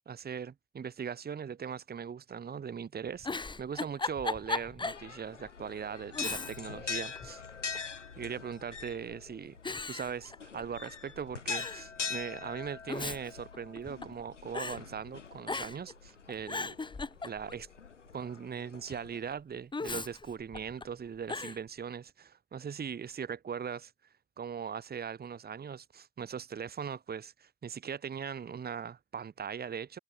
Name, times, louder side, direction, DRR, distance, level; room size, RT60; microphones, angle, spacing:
voice 1, 0.1-7.4 8.2-16.8 17.2-17.7 18.1-23.9 24.4-30.0, right 7 dB, 25° right, 1.5 m, -40 dB
Giggle, 3.1-5.1 5.5-5.6 6.1-6.8 7.2-8.0 8.7-9.1 9.6-10.9 11.1-11.2 11.5-11.9 12.7-14.2 14.5-14.8 15.4-15.9 16.3-17.7 19.7-20.8 21.3-21.6, left 3 dB, 15° left, 1.1 m, -37 dB
sound 1, 4.9-19.3, left 6 dB, 90° left, 1.0 m, -43 dB
figure-of-eight pair, 55°, 35 cm